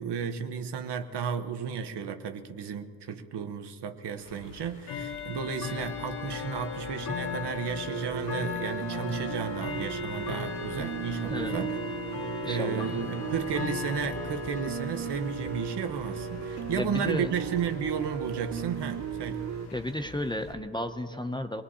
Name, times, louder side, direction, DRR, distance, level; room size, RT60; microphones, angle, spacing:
voice 1, 0.0-11.8 12.4-19.5, right 7 dB, 65° right, 1.1 m, -33 dB
Bell / Tick-tock, 4.2-20.5, left 6 dB, 60° left, 1.8 m, -38 dB
sound 1, 7.9-19.7, right 9 dB, 45° right, 0.4 m, -36 dB
voice 2, 12.4-12.8 16.8-17.3 19.7-21.6, left 1 dB, 10° left, 0.6 m, -33 dB
25.5 x 20.0 x 2.8 m
cardioid pair, 120°, 44 cm